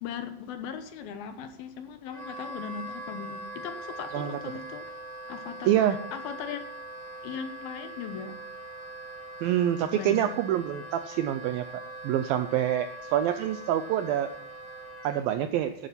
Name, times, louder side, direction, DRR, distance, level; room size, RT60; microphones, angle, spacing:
voice 1, 0.0-4.9 5.3-6.6 7.2-8.3 9.9-10.3, left 7 dB, 70° left, 9 dB, 2.6 m, -38 dB
Wind instrument woodwind instrument, 2.1-15.3, right 1 dB, 40° right, 5.2 m, -42 dB
voice 2, 5.6-6.0 9.4-11.7 12.0-14.3 15.0-15.7, right 11 dB, 80° right, 10 dB, 2.1 m, -26 dB
11.5 x 10.0 x 5.8 m, 0.76 s
omnidirectional pair, 4.9 m